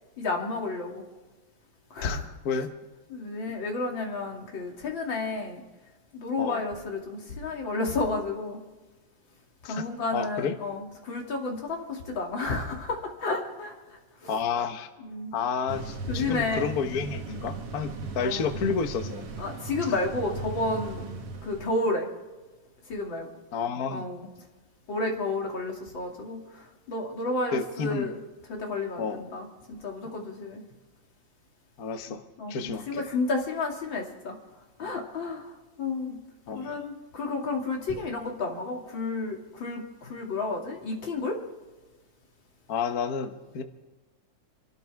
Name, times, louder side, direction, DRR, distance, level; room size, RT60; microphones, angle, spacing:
voice 1, 0.2-1.0 1.9-2.3 3.1-5.6 6.1-8.6 9.7-13.7 14.2-14.4 15.0-15.3 16.1-16.7 18.2-18.4 19.4-21.1 21.4-22.1 22.9-23.3 23.9-24.3 24.9-28.2 28.5-30.6 32.4-34.3 34.8-35.5 35.8-36.2 36.5-41.4, left 3 dB, 40° left, 0 dB, 3.0 m, -31 dB
voice 2, 2.0-2.7 6.4-6.6 9.6-9.9 10.1-10.6 14.3-14.9 15.3-19.3 23.5-24.1 27.5-28.1 29.0-29.3 31.8-32.2 32.5-33.1 36.5-36.8 42.7-43.6, left 6 dB, 85° left, 7 dB, 0.8 m, -30 dB
sound 1, 15.7-21.7, right 4 dB, 55° right, 2.4 m, -37 dB
27.0 x 13.0 x 3.5 m, 1.2 s
omnidirectional pair, 3.5 m